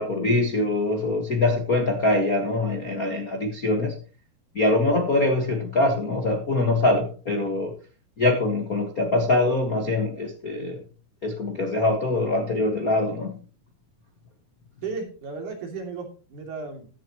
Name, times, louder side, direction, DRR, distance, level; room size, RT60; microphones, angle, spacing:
voice 1, 0.0-3.9 4.5-7.7 8.2-10.8 11.2-13.3, left 2 dB, 70° left, 3 dB, 0.8 m, -23 dB
voice 2, 14.8-16.9, right 4 dB, 55° right, 2 dB, 4.1 m, -34 dB
15.5 x 10.5 x 3.0 m, 0.36 s
omnidirectional pair, 4.4 m